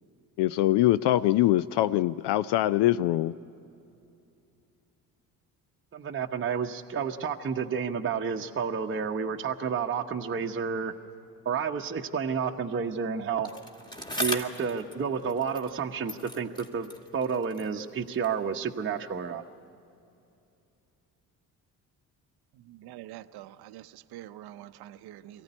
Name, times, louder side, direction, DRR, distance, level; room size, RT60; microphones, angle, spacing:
voice 1, 0.4-3.3, left 14 dB, 60° left, 17 dB, 0.5 m, -23 dB
voice 2, 5.9-10.9 11.4-13.5 14.2-19.4, right 6 dB, 25° right, 3 dB, 0.9 m, -30 dB
Bicycle, 13.4-15.8 16.1-18.5 19.2-19.3, equal, 10° left, 2.0 m, -38 dB
voice 3, 22.5-25.4, right 13 dB, 55° right, 11 dB, 0.7 m, -46 dB
22.5 x 15.0 x 9.8 m, 2.7 s
hypercardioid pair, 50°, 47 cm